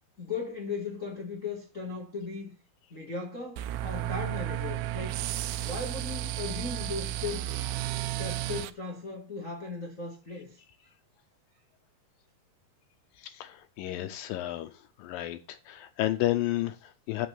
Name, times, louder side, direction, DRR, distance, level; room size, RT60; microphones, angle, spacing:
voice 1, 0.2-2.5 2.9-5.2 5.6-7.5 8.2-10.6, left 4 dB, 35° left, 1.2 m, -37 dB
sound 1, 3.6-8.7, right 13 dB, 80° right, 2.4 m, -33 dB
voice 2, 13.2-14.7 15.0-17.3, left 15 dB, 80° left, 2.1 m, -32 dB
7.9 x 6.1 x 6.8 m
omnidirectional pair, 4.4 m